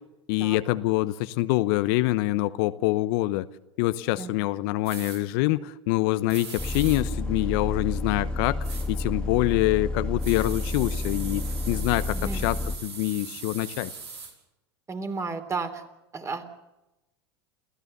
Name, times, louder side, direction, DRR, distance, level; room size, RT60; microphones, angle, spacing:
voice 1, 0.3-3.5 3.8-8.6 8.9-12.6 12.8-13.9, left 18 dB, 60° left, 13 dB, 0.9 m, -25 dB
sound 1, 4.9-5.2 6.3-7.0 8.6-8.9 10.2-14.3, right 5 dB, 85° right, 5.5 m, -40 dB
Bus, 6.6-12.8, left 2 dB, 5° left, 2.6 m, -30 dB
voice 2, 14.9-15.8 16.1-16.4, right 4 dB, 20° right, 8 dB, 3.4 m, -32 dB
29.5 x 15.0 x 6.9 m, 0.95 s
hypercardioid pair, 90°, 14 cm